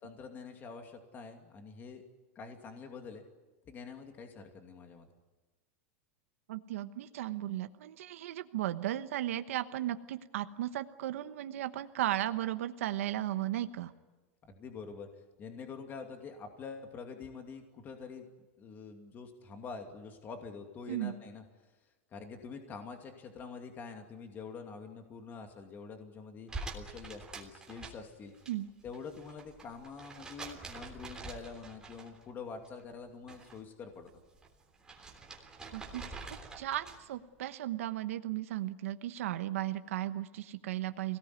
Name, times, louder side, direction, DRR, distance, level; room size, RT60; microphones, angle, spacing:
voice 1, 0.0-2.0 2.3-3.2 3.7-5.1 14.4-15.1 15.4-18.3 18.6-21.4 22.1-28.3 28.8-34.1, left 5 dB, 25° left, 4 dB, 2.6 m, -46 dB
voice 2, 6.5-13.9 20.9-21.1 28.5-28.7 35.7-41.2, right 13 dB, 85° right, 9 dB, 1.1 m, -36 dB
sound 1, 26.5-28.5 28.8-32.3 32.6-33.6 33.9-37.2, right 3 dB, 10° right, 3.4 m, -46 dB
24.5 x 18.5 x 9.6 m, 1.2 s
supercardioid pair, 150°, 7 cm